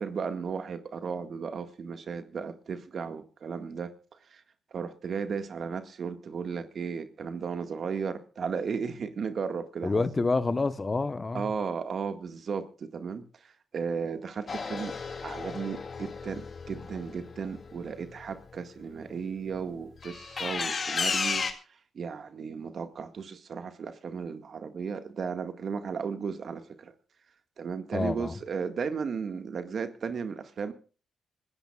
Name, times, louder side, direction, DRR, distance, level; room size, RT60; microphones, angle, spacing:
voice 1, 0.0-3.9 4.3-4.4 4.7-10.2 11.3-14.9 15.2-21.5 21.9-26.9 27.6-30.7, right 6 dB, 60° right, 1.9 m, -35 dB
voice 2, 9.8-11.5 27.9-28.3, left 3 dB, 30° left, 1.1 m, -28 dB
sound 1, 14.5-18.2 20.0-21.5, left 5 dB, 50° left, 2.3 m, -33 dB
25.5 x 14.0 x 2.5 m
supercardioid pair, 50°, 0 cm